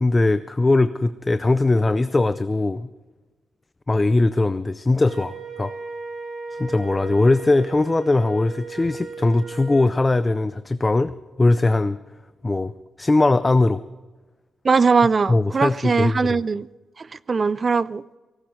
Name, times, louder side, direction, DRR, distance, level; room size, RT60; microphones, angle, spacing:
voice 1, 0.0-2.9 3.9-5.7 6.5-12.0 12.4-12.7 13.0-13.8 15.3-16.4, left 2 dB, 20° left, 0.5 m, -20 dB
Wind instrument woodwind instrument, 5.0-9.9, right 4 dB, 50° right, 7.3 m, -36 dB
voice 2, 14.6-16.7 17.0-18.0, right 4 dB, 35° right, 0.5 m, -20 dB
18.5 x 15.5 x 4.5 m
cardioid pair, 120°, 0 cm